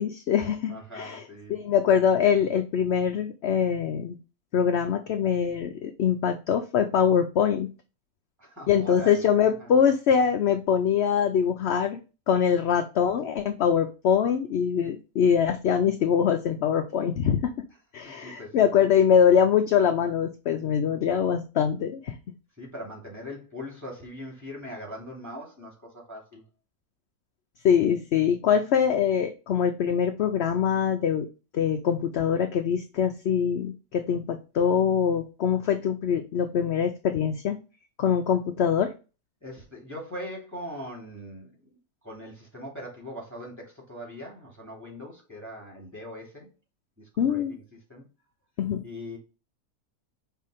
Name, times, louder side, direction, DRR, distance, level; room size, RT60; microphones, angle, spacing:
voice 1, 0.0-4.2 4.5-7.7 8.7-12.0 12.3-17.5 17.9-22.2 27.6-31.3 31.5-37.6 38.0-38.9 47.2-47.6 48.6-48.8, left 8 dB, 65° left, 6 dB, 0.6 m, -23 dB
voice 2, 0.7-1.6 8.4-9.7 18.1-18.7 22.6-26.4 39.4-41.5 42.0-46.5 47.0-47.6 47.9-48.0 48.8-49.2, equal, 10° right, -2 dB, 2.5 m, -41 dB
5.6 x 3.4 x 5.0 m, 0.33 s
omnidirectional pair, 1.6 m